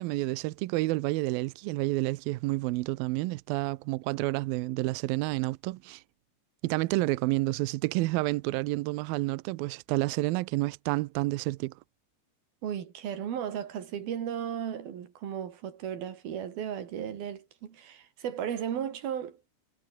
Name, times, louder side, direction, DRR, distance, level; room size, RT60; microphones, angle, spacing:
voice 1, 0.0-6.0 6.6-11.7, right 20 dB, 80° right, 2.1 m, -29 dB
voice 2, 12.6-19.4, right 9 dB, 60° right, 4.3 m, -35 dB
omnidirectional pair, 5.0 m